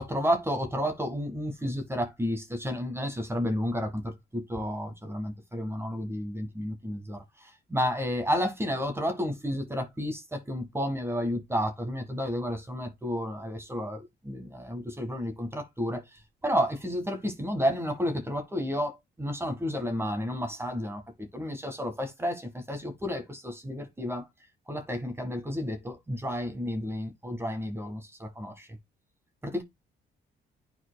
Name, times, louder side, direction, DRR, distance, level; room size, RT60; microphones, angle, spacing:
voice 1, 0.0-24.3 24.7-28.7 29.4-29.6, equal, 10° right, 1.7 m, -31 dB
11.0 x 4.6 x 2.2 m
cardioid pair, 90°, 20 cm